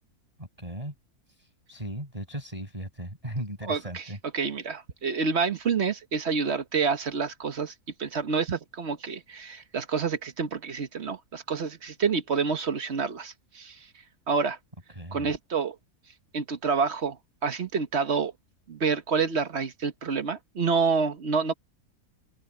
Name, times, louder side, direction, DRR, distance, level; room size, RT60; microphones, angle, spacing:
voice 1, 0.4-0.9 1.3-4.2 14.9-15.3, right 1 dB, 20° right, 5.6 m, -37 dB
voice 2, 3.6-4.0 4.3-7.7 8.0-13.9 14.3-14.6 15.1-15.8 16.3-17.2 17.4-18.3 18.7-21.5, right 5 dB, 45° right, 1.4 m, -28 dB
open air
omnidirectional pair, 1.7 m